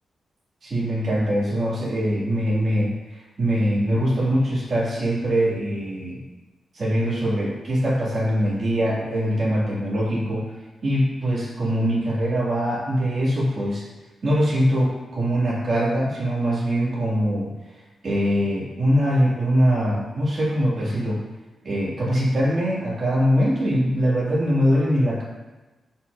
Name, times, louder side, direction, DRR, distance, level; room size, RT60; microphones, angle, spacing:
voice 1, 0.6-6.2 6.7-10.5 10.8-13.8 14.2-17.5 18.0-21.2 21.6-25.2, equal, 40° right, -6 dB, 2.4 m, -22 dB
12.0 x 5.4 x 2.7 m, 1.1 s
wide cardioid pair, 170°, 0 cm